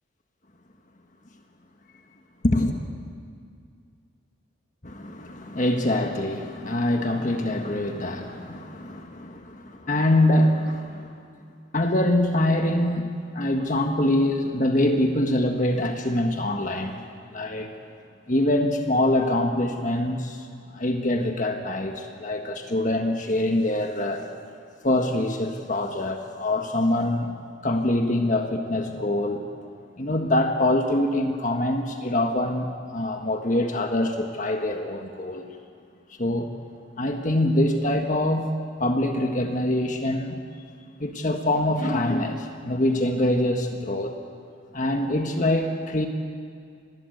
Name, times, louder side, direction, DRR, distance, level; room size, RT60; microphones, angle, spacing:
voice 1, 2.4-2.8 4.8-11.1 11.7-17.0 17.3-17.7 18.3-20.5 20.7-24.3 24.8-27.3 27.6-29.5 30.0-35.5 36.2-36.5 37.0-38.5 38.8-40.4 41.0-44.1 44.7-46.1, left 1 dB, 40° left, 4 dB, 1.5 m, -24 dB
27.0 x 20.0 x 8.0 m, 2.3 s
head